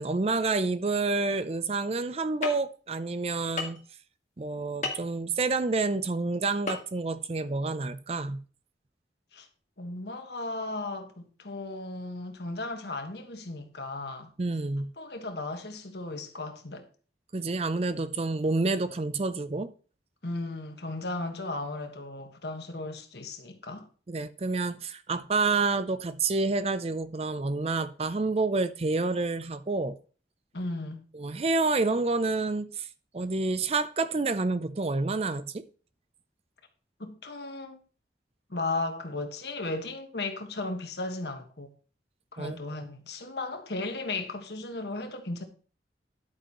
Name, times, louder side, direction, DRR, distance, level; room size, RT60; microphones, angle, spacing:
voice 1, 0.0-3.8 4.4-8.4 14.4-14.9 17.3-19.7 24.1-30.0 31.1-32.9 33.1-35.6 42.4-42.6, right 3 dB, 35° right, 0.5 m, -28 dB
sound 1, 2.4-2.5 3.6-3.8 4.8-5.1 6.7-6.8 7.1-7.2, left 3 dB, 40° left, 1.7 m, -31 dB
voice 2, 9.8-14.3 15.0-16.9 20.2-23.9 30.5-31.0 37.0-37.8 38.5-41.7 42.3-45.4, left 2 dB, 70° left, 1.5 m, -35 dB
10.5 x 8.7 x 3.0 m
head